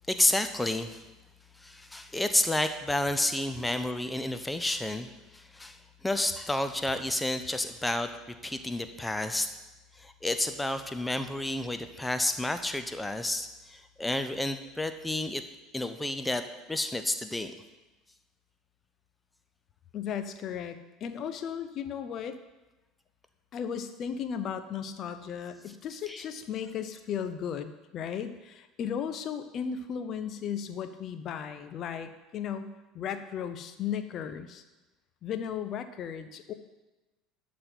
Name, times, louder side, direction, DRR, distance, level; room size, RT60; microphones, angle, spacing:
voice 1, 0.1-1.0 1.6-8.1 8.4-9.5 10.0-15.4 15.7-16.4 16.7-17.5 26.1-26.2, left 1 dB, 10° left, 9 dB, 0.9 m, -30 dB
voice 2, 19.9-22.4 23.5-34.6 35.2-36.5, left 8 dB, 45° left, 9 dB, 0.9 m, -35 dB
12.0 x 4.2 x 7.8 m, 1.1 s
figure-of-eight pair, 65°, 0 cm